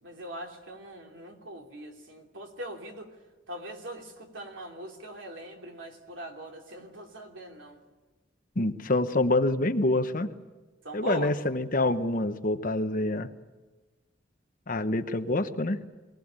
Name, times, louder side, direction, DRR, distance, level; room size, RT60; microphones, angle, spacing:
voice 1, 0.0-3.1 3.5-7.8 10.8-11.3, right 1 dB, 85° right, 2 dB, 3.0 m, -41 dB
voice 2, 8.6-10.3 10.9-13.3 14.7-15.8, left 2 dB, 45° left, 9 dB, 1.0 m, -26 dB
23.5 x 17.0 x 8.9 m, 1.2 s
head